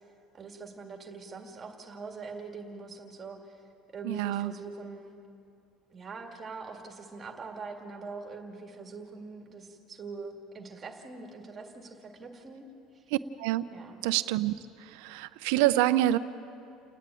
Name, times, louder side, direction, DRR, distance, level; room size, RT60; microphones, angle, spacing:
voice 1, 0.3-3.6 3.9-5.2 5.9-12.7 12.9-13.0 13.7-14.1, right 4 dB, 20° right, 2 dB, 2.0 m, -43 dB
voice 2, 4.0-4.5 13.4-13.7 14.0-14.5 15.0-16.2, right 14 dB, 80° right, 13 dB, 0.7 m, -26 dB
30.0 x 10.0 x 9.1 m, 2.7 s
cardioid pair, 170°, 0 cm